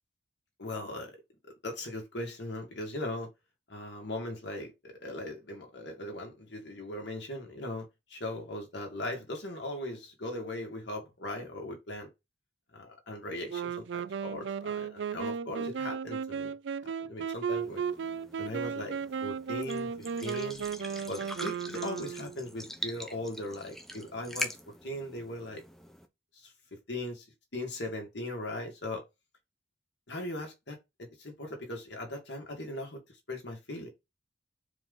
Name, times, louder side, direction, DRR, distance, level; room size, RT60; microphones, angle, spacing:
voice 1, 0.6-1.1 1.6-3.3 3.7-12.1 12.7-16.5 17.1-17.8 18.4-19.0 19.2-20.6 21.1-24.6 24.8-25.6 26.4-26.5 26.9-27.3 27.5-29.0 30.1-33.0 33.3-33.9, left 1 dB, 65° left, 1.9 m, -39 dB
Wind instrument woodwind instrument, 13.5-22.5, right 6 dB, 70° right, 0.4 m, -35 dB
sound 1, 17.5-26.1, equal, ahead, 0.6 m, -43 dB
4.7 x 3.8 x 5.4 m
head